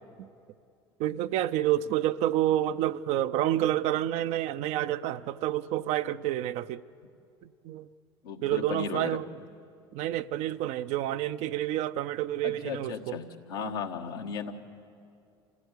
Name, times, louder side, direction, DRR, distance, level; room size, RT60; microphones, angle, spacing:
voice 1, 1.0-6.8 7.4-7.9 8.4-9.3 9.9-13.2, right 13 dB, 65° right, 0.6 m, -29 dB
voice 2, 8.2-9.2 12.4-14.5, left 5 dB, 85° left, 1.4 m, -36 dB
27.5 x 16.0 x 8.1 m
hypercardioid pair, 75°, 12 cm